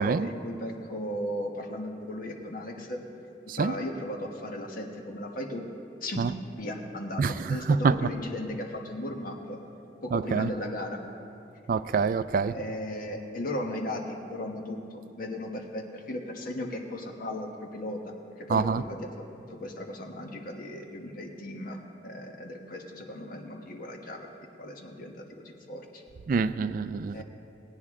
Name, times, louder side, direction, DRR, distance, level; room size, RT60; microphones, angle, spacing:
voice 1, 0.0-3.0 3.5-5.6 6.0-9.6 10.0-11.0 12.5-24.3 24.6-26.0 27.1-27.2, left 1 dB, 55° left, 2 dB, 1.2 m, -36 dB
voice 2, 7.2-8.1 10.1-10.5 11.7-12.5 18.5-18.8 26.3-27.2, right 5 dB, 50° right, 14 dB, 0.3 m, -26 dB
18.5 x 9.4 x 3.7 m, 2.6 s
head